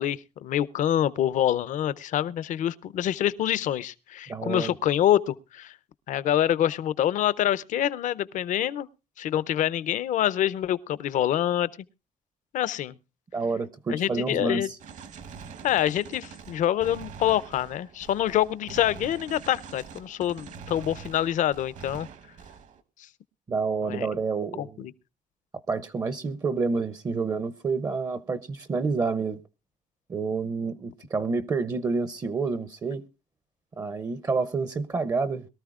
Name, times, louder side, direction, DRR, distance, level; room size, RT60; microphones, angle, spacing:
voice 1, 0.0-5.7 6.1-8.9 9.2-11.7 12.5-13.0 13.9-14.7 15.6-22.1 23.8-24.1 24.6-24.9, left 11 dB, 60° left, 0.6 m, -26 dB
voice 2, 4.3-4.7 13.3-14.8 23.5-24.9 25.7-29.4 30.1-33.0 33.8-35.5, right 4 dB, 25° right, 0.6 m, -28 dB
Gunshot gunfire, 14.8-22.8, right 6 dB, 60° right, 1.1 m, -44 dB
22.0 x 13.0 x 2.4 m
cardioid pair, 145°, 14 cm